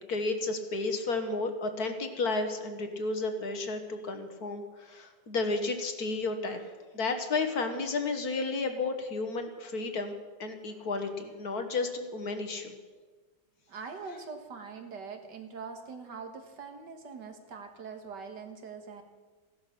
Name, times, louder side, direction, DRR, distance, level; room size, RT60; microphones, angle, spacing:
voice 1, 0.1-10.1 10.4-12.8, left 3 dB, 55° left, 6 dB, 1.8 m, -32 dB
voice 2, 13.7-19.0, right 5 dB, 65° right, 5 dB, 2.1 m, -43 dB
16.5 x 12.0 x 6.0 m, 1.4 s
omnidirectional pair, 2.0 m